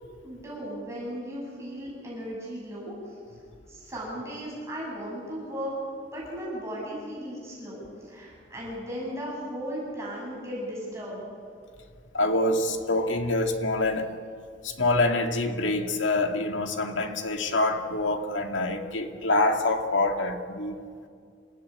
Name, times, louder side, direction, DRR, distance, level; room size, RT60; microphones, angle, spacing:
voice 1, 0.2-3.2 3.7-5.7 6.1-11.3, equal, 15° right, -5 dB, 7.3 m, -36 dB
voice 2, 12.1-14.1 14.6-20.9, left 2 dB, 85° left, 5 dB, 2.1 m, -26 dB
27.5 x 16.0 x 8.8 m, 2.2 s
head